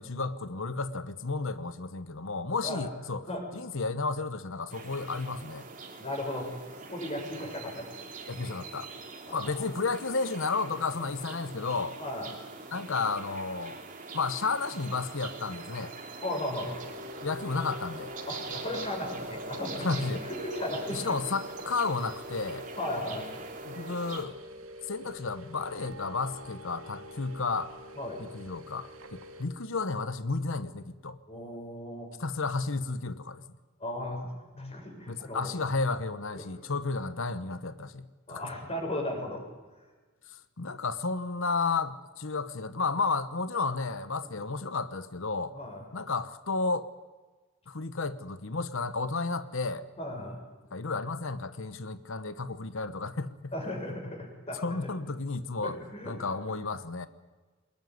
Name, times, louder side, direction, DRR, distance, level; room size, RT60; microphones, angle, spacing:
voice 1, 0.0-3.3 3.5-5.7 8.3-8.9 9.3-12.0 12.7-13.8 14.1-15.9 17.2-18.1 19.8-20.2 20.9-22.6 23.6-24.4 24.9-27.7 28.2-31.2 32.2-33.4 34.6-34.8 35.1-38.4 40.6-45.5 45.9-46.9 47.7-49.9 50.7-53.3 53.6-53.7 54.5-55.8 56.0-57.1, left 4 dB, 65° left, 13 dB, 1.1 m, -32 dB
sound 1, 4.7-24.2, right 4 dB, 40° right, 3.5 m, -44 dB
voice 2, 6.0-6.5 6.9-7.9 9.3-9.5 12.0-12.3 16.2-16.8 18.3-20.0 20.3-21.1 22.8-23.3 28.0-28.2 31.3-32.1 33.8-34.3 34.6-35.5 36.3-36.5 38.3-39.4 45.5-45.8 50.0-50.4 53.5-54.9 55.6-56.1, left 1 dB, 30° left, 2 dB, 6.8 m, -36 dB
sound 2, 16.5-29.5, left 1 dB, 80° right, 2.6 m, -44 dB
21.5 x 20.5 x 9.5 m, 1.3 s
head